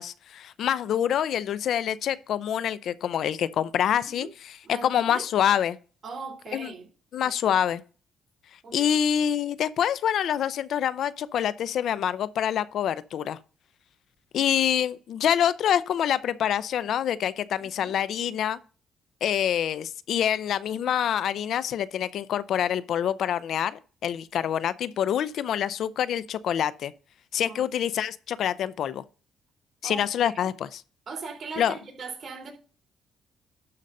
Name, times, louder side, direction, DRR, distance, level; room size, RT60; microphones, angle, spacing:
voice 1, 0.0-4.6 4.8-5.8 6.5-6.7 7.1-7.8 8.7-13.4 14.3-18.6 19.2-26.9 27.3-29.0 29.8-30.8 31.6-31.7, left 9 dB, 70° left, 0.5 m, -26 dB
voice 2, 3.9-4.3 4.6-5.2 6.0-6.9 7.4-7.6 8.6-8.9 17.8-17.9 27.4-27.6 29.8-30.3 31.1-32.5, right 4 dB, 45° right, 3.3 m, -39 dB
12.0 x 4.0 x 5.4 m
cardioid pair, 90°, 0 cm